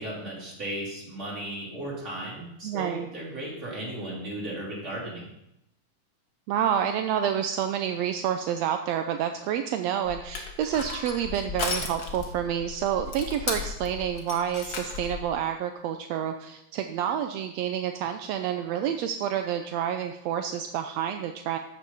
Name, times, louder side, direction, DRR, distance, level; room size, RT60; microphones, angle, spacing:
voice 1, 0.0-5.3, right 1 dB, 20° right, -5 dB, 3.6 m, -35 dB
voice 2, 2.6-3.1 6.5-21.6, right 9 dB, 80° right, 7 dB, 1.5 m, -29 dB
Crushing, 10.0-15.3, left 4 dB, 45° left, 1.8 m, -35 dB
14.0 x 6.6 x 5.5 m, 0.84 s
omnidirectional pair, 3.6 m